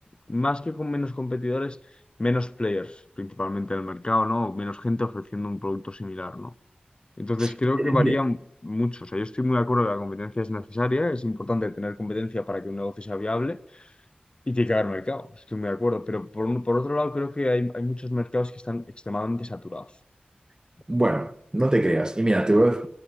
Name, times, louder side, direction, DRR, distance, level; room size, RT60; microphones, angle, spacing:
voice 1, 0.3-1.8 2.2-6.5 7.2-8.4 8.6-13.9 14.5-19.9, left 2 dB, 35° left, 0.7 m, -27 dB
voice 2, 7.8-8.2 20.9-22.9, right 1 dB, 25° right, 1.1 m, -22 dB
22.0 x 16.0 x 9.8 m
wide cardioid pair, 70°, 3 cm